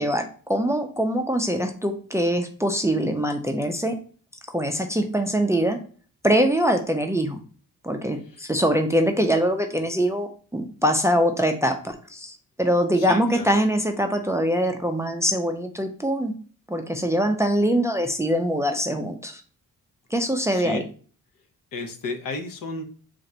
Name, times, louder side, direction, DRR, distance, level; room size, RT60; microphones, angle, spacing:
voice 1, 0.0-4.0 4.5-5.8 6.2-7.4 7.8-16.3 16.7-19.4 20.1-20.8, equal, 10° right, 5 dB, 0.4 m, -23 dB
voice 2, 12.9-13.5 20.5-20.8 21.7-22.8, left 3 dB, 65° left, 5 dB, 0.9 m, -33 dB
3.8 x 2.5 x 4.3 m, 0.42 s
cardioid pair, 105°, 35 cm